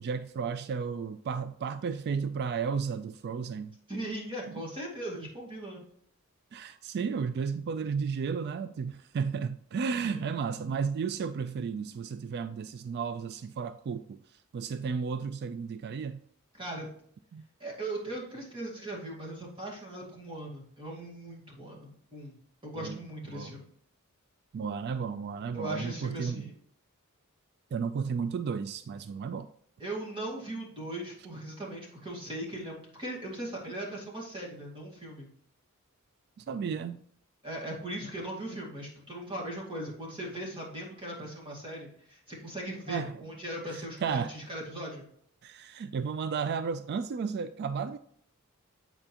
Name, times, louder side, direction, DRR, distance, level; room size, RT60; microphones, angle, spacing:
voice 1, 0.0-3.7 4.5-4.6 5.2-5.3 6.5-14.2 14.5-16.2 17.3-17.4 22.7-23.0 23.3-23.5 24.5-26.4 27.7-29.5 36.4-37.0 38.5-38.6 42.9-43.1 43.7-44.3 45.4-48.0, right 6 dB, 50° right, 0.3 m, -33 dB
voice 2, 3.9-5.8 10.0-10.3 16.5-16.9 17.6-22.4 22.6-23.6 25.5-26.5 29.8-35.3 37.4-45.1, right 1 dB, 25° right, 2.1 m, -39 dB
8.9 x 4.4 x 2.9 m
head